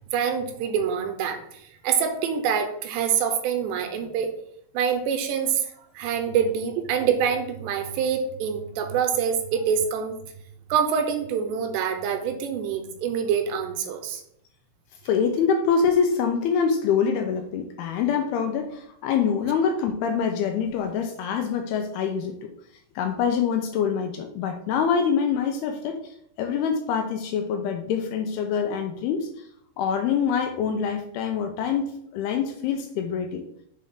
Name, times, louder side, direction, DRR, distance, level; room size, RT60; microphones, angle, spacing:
voice 1, 0.1-4.3 4.7-10.2 10.7-14.2, right 7 dB, 85° right, 6 dB, 3.0 m, -25 dB
voice 2, 15.0-22.5 23.0-29.3 29.8-33.5, left 6 dB, 80° left, 5 dB, 2.4 m, -25 dB
7.3 x 4.2 x 3.6 m, 0.71 s
omnidirectional pair, 4.9 m